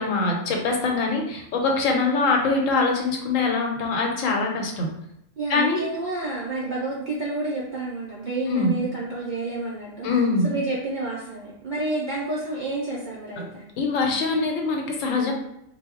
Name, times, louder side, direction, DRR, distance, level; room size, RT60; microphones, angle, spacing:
voice 1, 0.0-4.9 5.5-5.8 8.5-8.7 10.0-10.5 13.4-13.5 13.8-15.3, left 3 dB, 90° left, 2 dB, 1.0 m, -23 dB
voice 2, 5.4-10.1 10.4-13.6, right 2 dB, 65° right, -5 dB, 0.4 m, -29 dB
2.2 x 2.0 x 3.5 m, 0.78 s
omnidirectional pair, 1.3 m